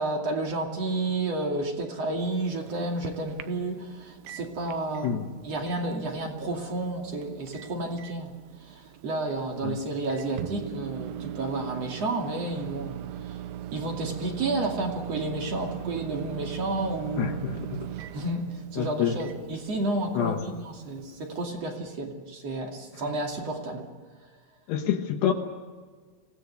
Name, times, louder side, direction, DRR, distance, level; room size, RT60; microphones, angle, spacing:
voice 1, 0.0-5.2 5.4-8.3 8.6-13.0 13.3-13.4 13.7-17.4 18.1-23.9, right 2 dB, 45° right, 2 dB, 3.1 m, -31 dB
Microwave oven, 2.2-21.5, right 11 dB, 75° right, 2.4 m, -40 dB
voice 2, 17.2-17.9 18.8-19.2 20.2-20.5 22.9-23.1 24.7-25.3, left 8 dB, 75° left, 2 dB, 3.4 m, -28 dB
26.0 x 18.0 x 6.8 m, 1.5 s
omnidirectional pair, 4.8 m